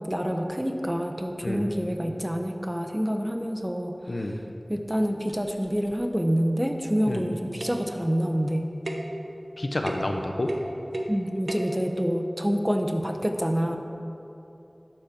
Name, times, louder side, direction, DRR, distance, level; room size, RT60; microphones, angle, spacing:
voice 1, 0.1-4.3 4.7-8.7 11.1-13.8, equal, 15° right, 4 dB, 1.0 m, -27 dB
sound 1, 4.2-4.3 4.9-5.0 5.3-6.1 7.1-7.3 7.6-7.9 8.8-9.2 9.9-10.2 10.5-11.2 11.5-11.8, right 1 dB, 85° right, 1.0 m, -34 dB
voice 2, 9.6-10.5, left 1 dB, 75° left, 3 dB, 1.1 m, -29 dB
11.5 x 7.7 x 6.0 m, 2.9 s
wide cardioid pair, 45°, 0 cm